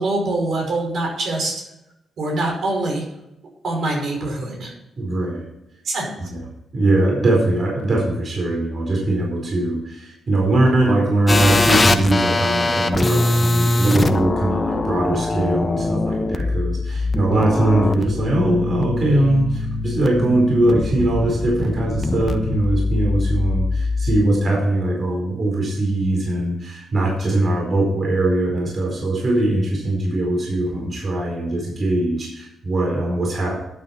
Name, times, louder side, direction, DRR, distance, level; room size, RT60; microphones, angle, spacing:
voice 1, 0.0-1.5 2.2-3.0 3.6-4.7 5.8-6.3, right 2 dB, 65° right, 0 dB, 5.2 m, -24 dB
voice 2, 5.0-5.5 6.3-6.4 6.7-33.6, right 1 dB, 45° right, -1 dB, 4.5 m, -21 dB
sound 1, 11.3-24.2, left 2 dB, 25° left, 1.0 m, -22 dB
12.0 x 8.8 x 4.4 m, 0.88 s
cardioid pair, 90°, 0 cm